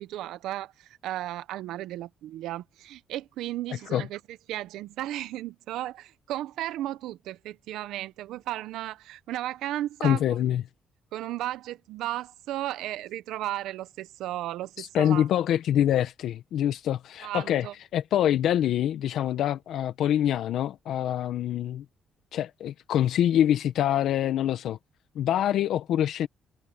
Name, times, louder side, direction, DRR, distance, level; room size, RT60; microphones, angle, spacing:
voice 1, 0.0-4.2 4.5-10.4 11.1-15.3 17.2-17.7, right 14 dB, 90° right, 0.8 m, -34 dB
voice 2, 10.0-10.6 14.8-17.7 17.9-21.8 22.3-24.8 25.1-26.3, left 11 dB, 80° left, 1.0 m, -25 dB
cardioid pair, 90°, 0 cm